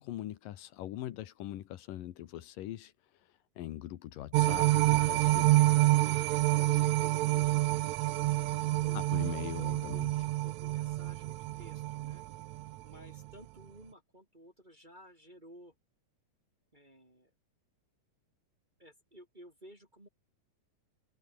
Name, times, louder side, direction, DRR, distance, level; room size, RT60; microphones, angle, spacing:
voice 1, 0.0-2.9 3.6-5.6 8.9-10.1, left 13 dB, 75° left, 2.8 m, -42 dB
sound 1, 4.3-12.7 13.1-13.2, right 16 dB, 80° right, 1.7 m, -28 dB
voice 2, 5.9-6.3 6.6-7.7 8.3-9.0 9.6-10.1 10.4-12.2 12.8-15.7 16.7-17.3 18.8-20.1, equal, 15° right, 2.7 m, -55 dB
omnidirectional pair, 4.0 m